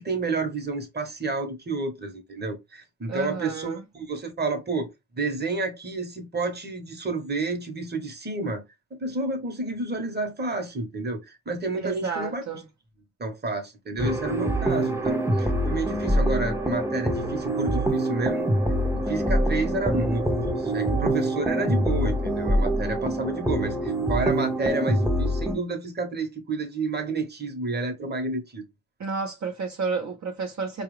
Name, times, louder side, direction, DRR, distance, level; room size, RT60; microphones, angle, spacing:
voice 1, 0.0-4.9 5.2-8.6 8.9-12.4 13.2-18.5 18.9-28.6, right 3 dB, 30° right, 1.0 m, -30 dB
voice 2, 3.1-3.8 11.7-12.7 29.0-30.8, right 4 dB, 55° right, 0.7 m, -31 dB
sound 1, 14.0-25.5, right 1 dB, 10° right, 0.6 m, -25 dB
4.6 x 2.4 x 3.1 m
wide cardioid pair, 130°, 34 cm